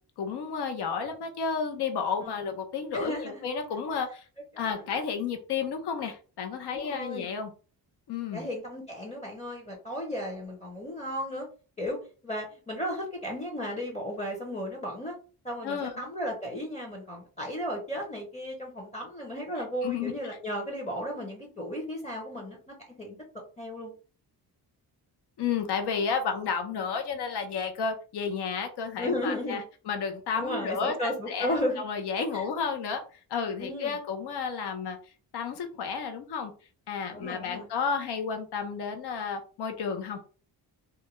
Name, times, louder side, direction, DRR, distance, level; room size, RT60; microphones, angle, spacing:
voice 1, 0.2-4.3 4.6-7.5 8.1-8.5 15.6-15.9 19.8-20.1 25.4-33.0 33.3-35.0 35.3-36.5 36.9-40.2, left 6 dB, 80° left, 5 dB, 0.7 m, -32 dB
voice 2, 2.9-3.5 4.5-4.8 6.7-7.3 8.3-11.5 11.8-15.2 15.4-23.2 23.6-23.9 29.0-29.6 30.4-31.8 32.3-32.5 33.6-34.0 37.1-37.7, equal, 15° left, 0 dB, 0.6 m, -34 dB
2.4 x 2.2 x 2.9 m, 0.37 s
cardioid pair, 120°, 40 cm